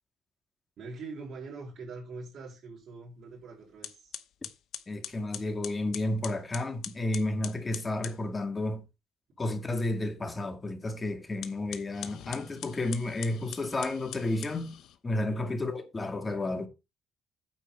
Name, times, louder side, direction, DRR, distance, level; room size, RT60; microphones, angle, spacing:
voice 1, 0.8-4.2 15.3-15.7, right 3 dB, 70° right, 4.6 m, -43 dB
sound 1, 3.3-3.4 3.8-8.2 11.3-15.0, left 11 dB, 85° left, 0.9 m, -43 dB
voice 2, 4.9-8.8 9.4-14.8 15.0-16.7, left 2 dB, 25° left, 2.1 m, -32 dB
9.0 x 4.4 x 7.0 m
cardioid pair, 90°, 0 cm